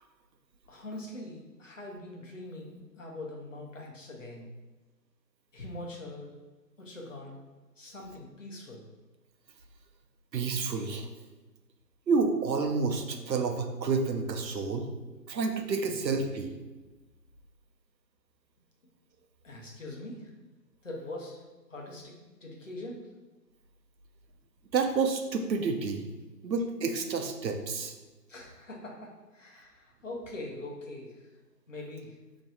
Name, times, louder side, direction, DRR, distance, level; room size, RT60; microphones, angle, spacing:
voice 1, 0.7-4.5 5.5-6.3 6.8-7.4 7.8-8.8 19.4-20.3 20.8-21.4 21.7-23.0 28.3-31.2 31.7-32.1, left 2 dB, 50° left, -1 dB, 0.9 m, -42 dB
voice 2, 10.3-11.1 12.1-14.9 15.3-16.5 24.7-26.1 26.4-27.9, right 4 dB, 90° right, 4 dB, 0.8 m, -29 dB
3.1 x 2.6 x 4.1 m, 1.2 s
figure-of-eight pair, 175°, 50 cm